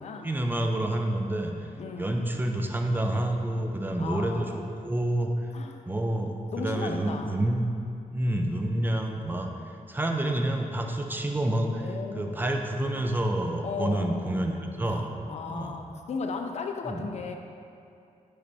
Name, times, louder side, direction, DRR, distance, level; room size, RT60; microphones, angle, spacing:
voice 1, 0.2-1.7 2.0-5.3 5.9-7.7 8.1-9.5 9.9-11.8 12.2-15.1 15.5-15.8 16.9-17.0, right 1 dB, 15° right, 3 dB, 0.4 m, -28 dB
voice 2, 1.8-2.3 4.0-4.7 5.5-5.8 6.5-7.3 11.8-12.5 13.6-14.4 14.9-15.0 15.3-17.4, left 4 dB, 55° left, 4 dB, 0.5 m, -36 dB
7.9 x 3.4 x 4.1 m, 2.5 s
wide cardioid pair, 140°, 14 cm